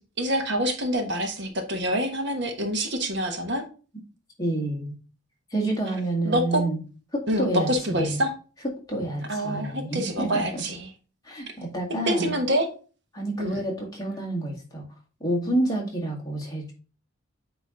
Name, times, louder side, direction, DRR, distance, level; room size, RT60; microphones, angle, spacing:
voice 1, 0.2-3.6 6.2-6.6 7.3-8.3 9.3-10.9 12.1-12.7 13.4-13.6, equal, 55° right, 5 dB, 1.2 m, -26 dB
voice 2, 4.4-5.0 5.5-6.8 7.1-8.2 8.9-10.6 11.2-12.3 13.1-14.9 15.2-16.7, right 1 dB, 15° left, -2 dB, 1.7 m, -28 dB
8.6 x 3.0 x 3.8 m, 0.36 s
head